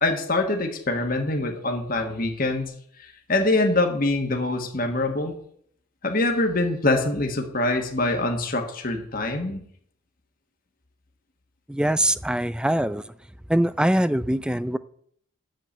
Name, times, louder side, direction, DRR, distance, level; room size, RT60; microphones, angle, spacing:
voice 1, 0.0-5.3 6.0-9.7, left 2 dB, 45° left, 1.5 m, -24 dB
voice 2, 11.7-13.1 13.5-14.8, right 1 dB, 5° right, 0.3 m, -23 dB
7.8 x 7.6 x 8.7 m
head